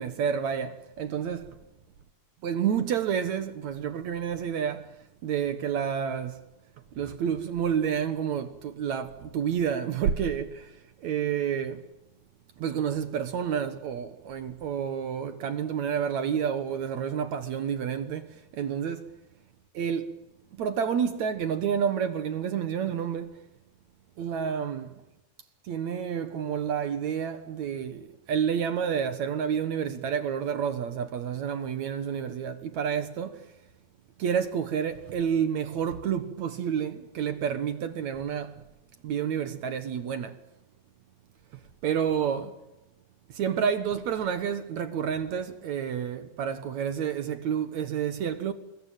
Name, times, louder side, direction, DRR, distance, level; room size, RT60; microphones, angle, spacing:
voice 1, 0.0-1.4 2.4-4.9 5.2-6.4 6.9-11.9 12.6-19.0 19.7-20.1 20.5-23.4 24.2-24.9 25.6-33.4 34.2-38.6 39.0-40.4 41.8-42.6 43.3-48.5, right 8 dB, 60° right, 2.2 m, -29 dB
28.0 x 21.5 x 9.1 m
omnidirectional pair, 4.2 m